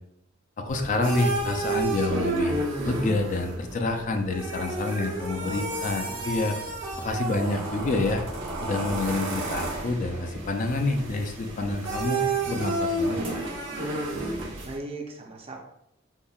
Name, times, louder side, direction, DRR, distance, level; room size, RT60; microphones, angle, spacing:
voice 1, 0.6-2.6 2.8-6.6 7.0-8.2 8.6-13.4, left 2 dB, 40° left, 5 dB, 0.4 m, -28 dB
sound 1, 0.7-14.8, right 2 dB, 80° right, 0.8 m, -31 dB
voice 2, 5.3-6.3 14.6-15.6, right 2 dB, 30° right, 1 dB, 0.5 m, -39 dB
5.3 x 2.1 x 2.3 m, 0.80 s
head